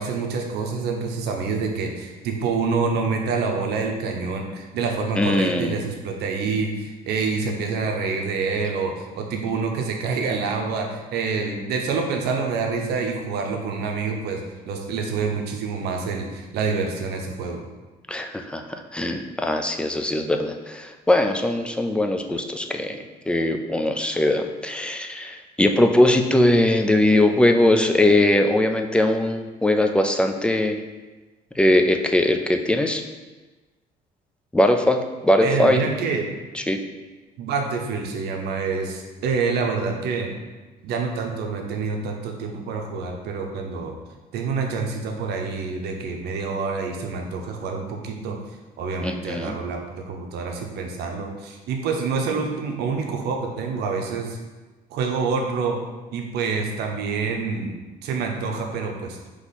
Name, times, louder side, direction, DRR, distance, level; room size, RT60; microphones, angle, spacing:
voice 1, 0.0-14.4 14.7-17.6 35.4-36.3 37.4-40.3 40.8-43.9 44.3-48.4 48.8-54.4 54.9-55.8 56.1-57.8 58.0-59.2, right 4 dB, 75° right, 2 dB, 0.7 m, -27 dB
voice 2, 5.2-5.8 18.1-18.6 18.9-23.0 23.3-30.8 31.6-33.0 34.5-35.8 36.7-36.8 49.0-49.5, left 1 dB, 5° left, 5 dB, 0.3 m, -20 dB
3.8 x 2.9 x 4.1 m, 1.2 s
cardioid pair, 110°, 17 cm